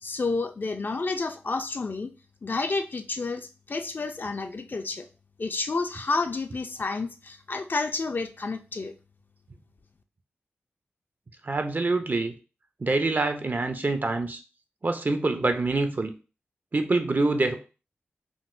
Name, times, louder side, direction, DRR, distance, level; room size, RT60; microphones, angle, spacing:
voice 1, 0.0-2.1 2.4-5.1 5.4-8.9, left 3 dB, 50° left, 7 dB, 0.4 m, -30 dB
voice 2, 11.4-12.3 12.8-14.4 14.8-16.1 16.7-17.6, right 3 dB, 45° right, 7 dB, 0.5 m, -25 dB
3.7 x 2.1 x 2.5 m, 0.33 s
cardioid pair, 40°, 4 cm